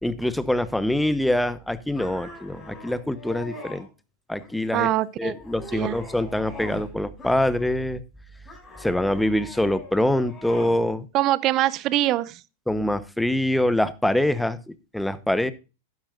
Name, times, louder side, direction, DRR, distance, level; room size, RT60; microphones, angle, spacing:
voice 1, 0.0-3.9 4.3-4.9 5.2-8.0 8.8-11.0 12.7-15.5, left 1 dB, 5° left, 0.9 m, -24 dB
Man grunt struggling, 1.9-3.8 4.4-4.9 5.3-6.9 7.2-7.9 8.5-10.8, left 1 dB, 20° left, 6.6 m, -42 dB
voice 2, 4.7-5.3 5.7-6.0 11.1-12.4, right 15 dB, 40° right, 0.6 m, -23 dB
12.0 x 10.5 x 2.4 m
hypercardioid pair, 105°, 0 cm